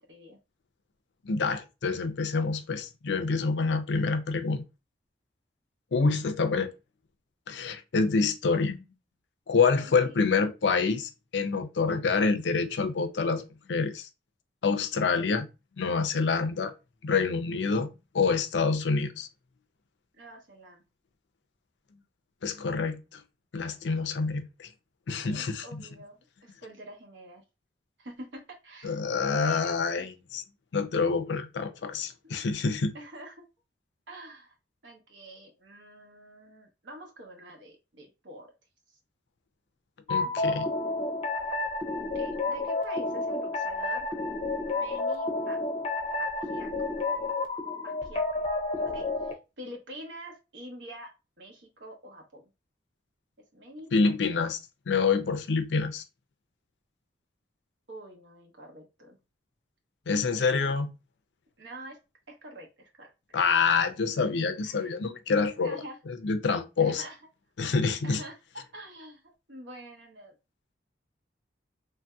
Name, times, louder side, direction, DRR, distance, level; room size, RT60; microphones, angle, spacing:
voice 1, 0.1-0.4 9.8-10.2 20.2-20.8 23.9-24.0 25.1-27.4 28.0-29.0 29.4-30.1 32.2-32.3 32.9-33.4 34.1-34.6 34.8-38.5 38.9-39.0 40.2-40.7 42.1-44.1 44.7-45.6 46.2-46.9 47.8-48.4 48.9-52.5 53.5-53.9 54.3-54.4 57.9-59.2 60.3-60.8 61.6-62.0 62.3-63.4 64.6-64.9 65.6-66.0 66.8-67.2 68.0-68.4 68.7-70.3, right 1 dB, 80° right, 1.0 m, -46 dB
voice 2, 1.2-4.6 5.9-6.7 7.5-8.8 9.5-14.1 14.6-15.5 15.8-16.7 17.0-17.9 18.1-19.3 22.4-23.2 23.5-24.7 25.1-25.8 28.8-30.1 30.7-33.0 40.1-40.7 53.9-54.6 54.9-56.0 60.1-60.9 63.3-67.0 67.6-68.2, left 4 dB, 75° left, 0.5 m, -27 dB
sound 1, 40.1-49.3, left 2 dB, 30° left, 0.5 m, -30 dB
3.3 x 2.7 x 2.2 m
head